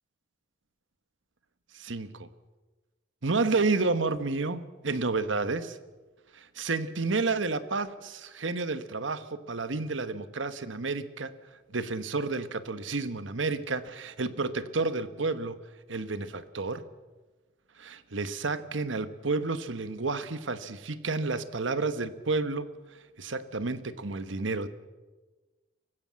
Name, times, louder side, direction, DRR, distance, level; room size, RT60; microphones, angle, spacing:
voice 1, 1.7-2.3 3.2-5.8 6.3-11.3 11.7-15.6 15.9-16.8 17.8-22.7 23.2-24.7, right 3 dB, 90° right, 12 dB, 1.2 m, -30 dB
24.0 x 16.0 x 7.5 m, 1.2 s
head